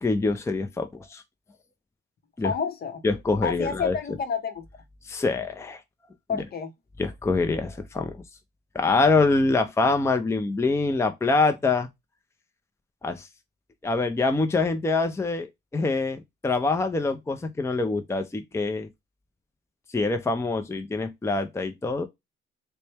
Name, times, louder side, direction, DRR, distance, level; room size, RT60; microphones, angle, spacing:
voice 1, 0.0-1.2 2.4-2.5 3.0-4.0 5.0-5.8 6.3-6.4 7.0-8.2 8.7-11.9 13.0-13.3 13.8-18.9 19.9-22.1, left 3 dB, 15° left, 0.5 m, -25 dB
voice 2, 2.4-3.0 3.4-4.6 6.3-6.7, left 6 dB, 50° left, 0.8 m, -29 dB
4.1 x 2.2 x 3.3 m
cardioid pair, 90°, 20 cm